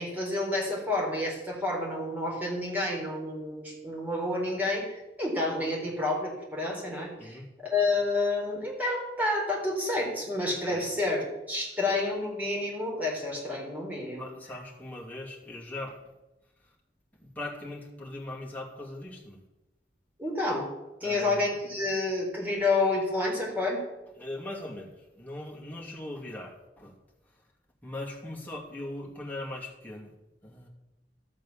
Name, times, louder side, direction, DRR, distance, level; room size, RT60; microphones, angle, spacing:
voice 1, 0.0-14.3 20.2-20.7 21.0-23.8, left 2 dB, 10° right, -3 dB, 3.9 m, -29 dB
voice 2, 14.2-16.0 17.1-19.4 21.0-21.5 24.2-26.9 27.8-30.1 30.4-30.7, left 1 dB, 10° left, -3 dB, 2.6 m, -40 dB
14.0 x 6.4 x 7.2 m, 0.97 s
head